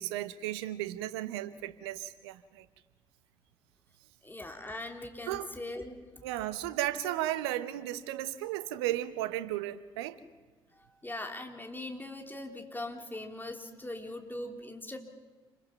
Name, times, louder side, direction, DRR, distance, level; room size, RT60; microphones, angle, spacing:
voice 1, 0.0-2.7 5.3-5.5 6.2-10.2, right 14 dB, 75° right, 13 dB, 0.9 m, -34 dB
voice 2, 4.2-6.0 11.0-15.0, left 2 dB, 15° left, 3 dB, 3.3 m, -40 dB
28.0 x 21.5 x 6.0 m, 1.3 s
figure-of-eight pair, 45°, 14 cm